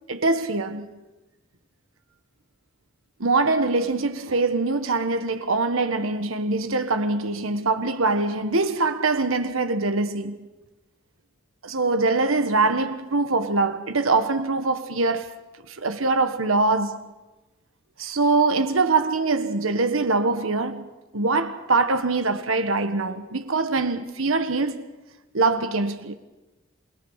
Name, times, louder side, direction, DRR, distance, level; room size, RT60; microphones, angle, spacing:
voice 1, 0.1-1.0 3.2-10.5 11.6-15.3 15.7-17.1 18.0-20.8 21.1-24.8 25.3-26.2, right 3 dB, 80° right, 1.4 m, -23 dB
27.5 x 18.5 x 6.5 m
head